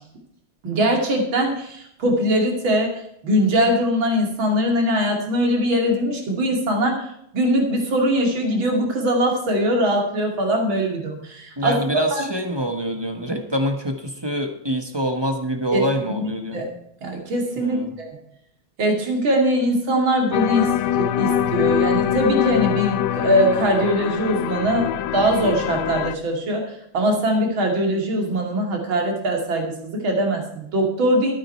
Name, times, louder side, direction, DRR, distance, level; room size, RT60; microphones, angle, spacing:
voice 1, 0.6-2.9 3.2-7.1 7.3-12.2 15.7-15.8 16.2-16.7 17.0-18.2 18.8-20.7 21.0-26.6 26.9-31.3, equal, 70° right, 2 dB, 3.3 m, -21 dB
voice 2, 11.6-16.6 17.6-17.9, equal, 15° right, 4 dB, 1.1 m, -25 dB
sound 1, 20.3-26.1, left 11 dB, 75° left, 0.9 m, -23 dB
12.5 x 10.0 x 4.5 m, 0.74 s
omnidirectional pair, 2.3 m